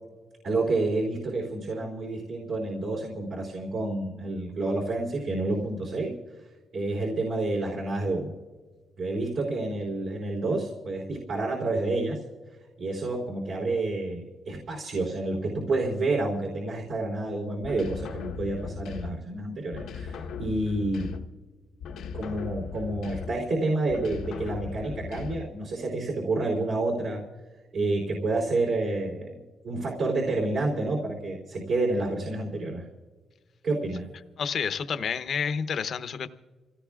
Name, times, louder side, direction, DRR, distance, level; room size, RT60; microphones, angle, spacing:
voice 1, 0.4-6.1 6.7-8.4 9.0-12.2 12.8-21.1 22.1-27.2 27.7-32.8 33.6-34.0, right 2 dB, 65° right, -2 dB, 3.5 m, -29 dB
sound 1, 17.6-19.4 19.7-21.5 21.8-23.5 23.9-25.6, left 6 dB, 85° left, 1.1 m, -38 dB
voice 2, 34.4-36.3, left 6 dB, 55° left, 10 dB, 0.8 m, -29 dB
28.0 x 17.0 x 2.4 m, 1.4 s
cardioid pair, 125°, 0 cm